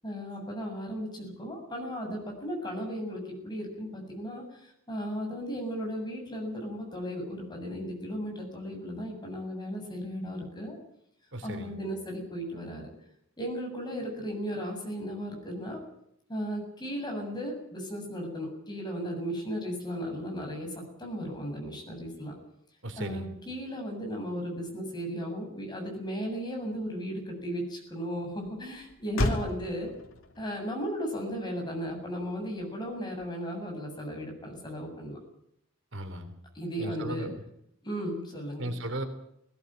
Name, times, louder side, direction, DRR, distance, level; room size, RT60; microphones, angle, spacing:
voice 1, 0.0-10.8 11.4-12.9 13.4-15.8 16.3-22.3 23.0-29.9 30.4-35.2 36.5-37.3 37.8-38.7, equal, 20° left, 2 dB, 7.6 m, -35 dB
voice 2, 11.3-11.7 22.8-23.3 35.9-36.3 36.8-37.3 38.6-39.0, right 1 dB, 65° right, 7 dB, 3.3 m, -36 dB
Motor vehicle (road), 25.2-33.7, left 1 dB, 90° left, 2.7 m, -38 dB
20.0 x 17.0 x 9.1 m, 0.76 s
head